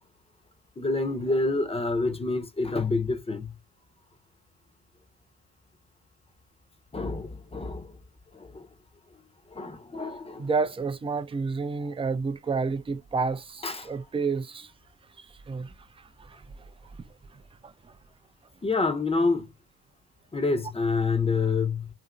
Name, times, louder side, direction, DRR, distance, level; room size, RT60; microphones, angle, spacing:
voice 1, 0.8-3.5 6.9-8.0 8.3-8.7 9.5-10.5 11.8-11.9 13.6-13.9 18.6-19.5 20.3-21.9, left 3 dB, 15° left, 0.7 m, -27 dB
voice 2, 10.4-14.7 15.2-15.7 16.3-16.4, right 4 dB, 15° right, 0.4 m, -30 dB
2.7 x 2.6 x 2.3 m
hypercardioid pair, 65°, 40 cm